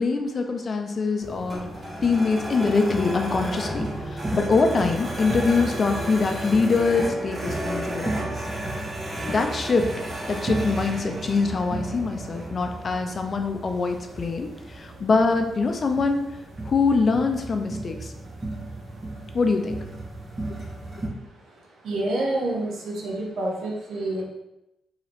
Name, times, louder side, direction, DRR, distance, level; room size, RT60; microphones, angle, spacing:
voice 1, 0.0-1.7 2.0-8.1 9.3-9.9 10.3-14.5 14.7-16.2 16.7-18.1 19.3-19.8, left 4 dB, 50° left, 5 dB, 0.4 m, -23 dB
sound 1, 1.2-21.1, right 1 dB, 35° right, 1.0 m, -33 dB
voice 2, 21.8-24.2, right 1 dB, 75° right, 0 dB, 0.7 m, -27 dB
2.8 x 2.4 x 3.2 m, 0.91 s
supercardioid pair, 50°, 0 cm